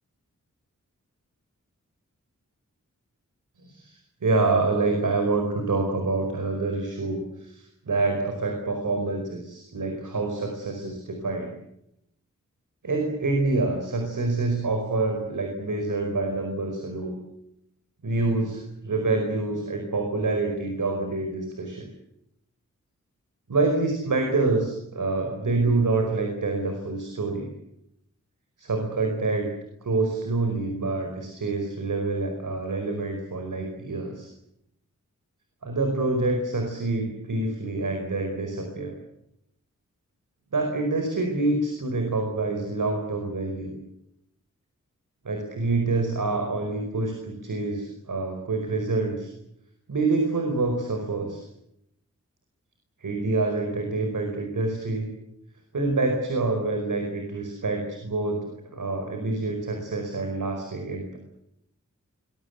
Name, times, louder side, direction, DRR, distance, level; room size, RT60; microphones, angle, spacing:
voice 1, 3.6-11.5 12.8-17.2 18.0-21.9 23.5-27.5 28.6-29.5 29.8-34.3 35.6-38.9 40.5-43.7 45.3-49.3 49.9-51.5 53.0-55.1 55.7-61.2, right 3 dB, 80° right, 3 dB, 5.0 m, -27 dB
24.5 x 22.5 x 8.3 m, 0.81 s
wide cardioid pair, 90°, 31 cm